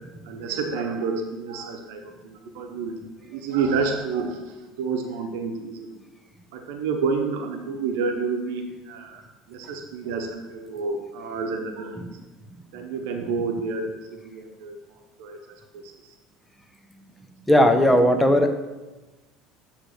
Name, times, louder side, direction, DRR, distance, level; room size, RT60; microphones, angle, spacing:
voice 1, 0.2-3.0 3.3-4.4 4.7-6.0 6.5-9.2 9.5-12.1 12.7-13.9 14.2-14.8 15.2-15.4 15.7-15.9, right 4 dB, 80° right, 4 dB, 0.9 m, -29 dB
voice 2, 17.5-18.5, equal, 10° left, 6 dB, 0.8 m, -17 dB
8.0 x 3.3 x 6.4 m, 1.1 s
supercardioid pair, 90°, 0 cm